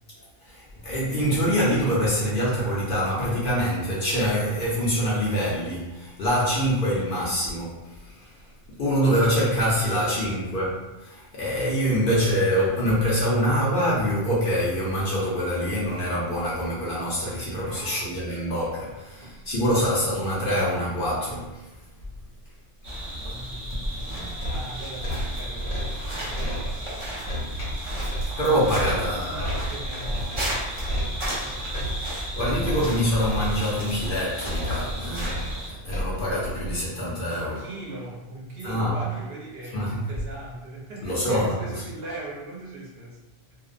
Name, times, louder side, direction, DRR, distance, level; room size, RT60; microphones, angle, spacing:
voice 1, 0.2-8.5 8.8-21.6 28.4-29.3 31.8-31.9 32.3-37.6 38.6-39.0 39.7-40.0 41.0-41.6, equal, 55° left, -6 dB, 0.7 m, -25 dB
voice 2, 9.7-10.1 10.4-10.5 17.6-18.1 19.2-19.4 23.1-27.3 28.8-30.9 31.2-31.8 37.3-43.2 43.5-43.6, right 2 dB, 60° right, -5 dB, 0.9 m, -40 dB
sound 1, 22.8-35.7, right 1 dB, 35° right, 0.5 m, -34 dB
sound 2, 24.3-36.8, equal, 80° left, 1.0 m, -32 dB
2.5 x 2.0 x 2.4 m, 1.0 s
omnidirectional pair, 1.2 m